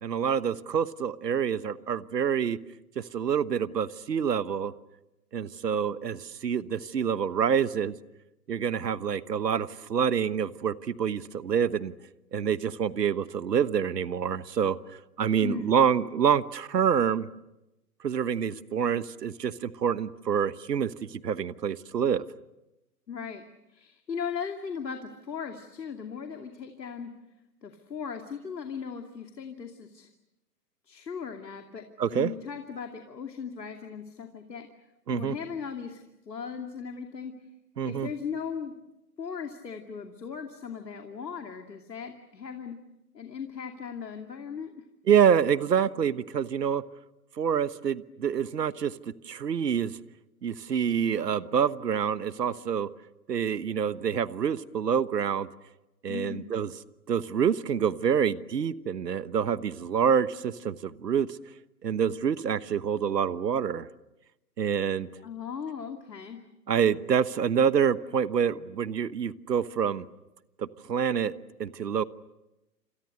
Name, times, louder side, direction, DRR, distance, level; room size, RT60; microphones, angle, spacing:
voice 1, 0.0-2.6 3.0-4.7 5.3-8.0 8.5-11.9 12.3-14.8 15.2-17.3 18.0-22.2 32.0-32.3 35.1-35.4 37.8-38.1 45.1-46.8 47.4-48.9 49.2-50.0 50.4-52.9 53.3-55.5 56.0-56.7 57.1-61.3 61.8-63.9 64.6-65.1 66.7-70.1 70.6-71.3 71.6-72.0, right 7 dB, 75° right, 15 dB, 1.3 m, -27 dB
voice 2, 15.4-15.8 23.1-23.4 23.7-27.1 27.6-30.1 30.9-34.7 35.1-37.3 37.8-38.7 39.2-42.8 43.1-44.8 56.1-56.5 65.2-66.4, left 6 dB, 80° left, 5 dB, 2.7 m, -38 dB
28.5 x 28.0 x 6.6 m, 0.95 s
hypercardioid pair, 135°, 49 cm